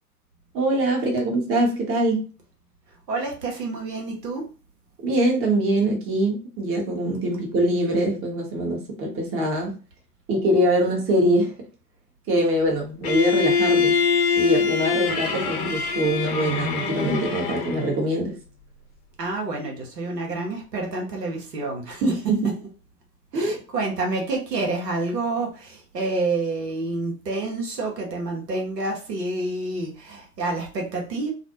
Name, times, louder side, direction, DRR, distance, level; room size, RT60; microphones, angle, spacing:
voice 1, 0.5-2.3 5.0-9.7 10.3-11.5 12.3-14.0 14.4-18.4 22.0-22.5 23.3-23.6, right 1 dB, 30° right, 0.9 m, -23 dB
voice 2, 3.1-4.5 19.2-22.1 23.3-31.3, right 2 dB, 90° right, 0.8 m, -28 dB
Bowed string instrument, 13.0-18.0, left 5 dB, 45° left, 0.8 m, -23 dB
2.4 x 2.0 x 2.7 m
figure-of-eight pair, 85°, 48 cm